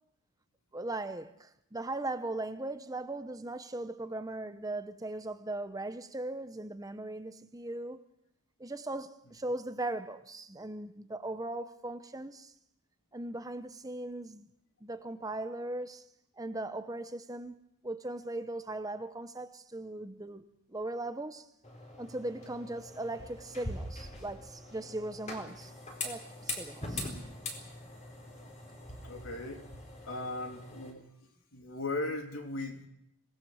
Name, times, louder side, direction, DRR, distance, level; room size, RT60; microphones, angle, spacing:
voice 1, 0.7-8.0 8.6-12.5 13.1-14.5 14.8-16.1 16.4-20.4 20.7-21.5 22.0-25.7 26.0-27.1, right 2 dB, 15° right, 0.8 m, -39 dB
sound 1, 21.6-30.9, left 2 dB, 30° left, 4.3 m, -43 dB
voice 2, 29.0-29.6 30.1-31.0 31.5-32.9, left 2 dB, 70° left, 3.1 m, -37 dB
26.0 x 18.0 x 6.4 m
head